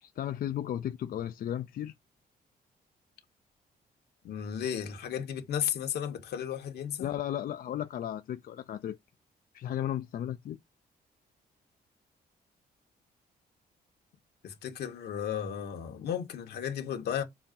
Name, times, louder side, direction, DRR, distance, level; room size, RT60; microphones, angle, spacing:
voice 1, 0.0-1.9 7.0-9.0 9.5-10.6, left 11 dB, 60° left, 0.5 m, -34 dB
voice 2, 4.2-7.1 14.4-17.2, left 9 dB, 85° left, 1.9 m, -34 dB
6.9 x 2.8 x 5.4 m
cardioid pair, 140°, 16 cm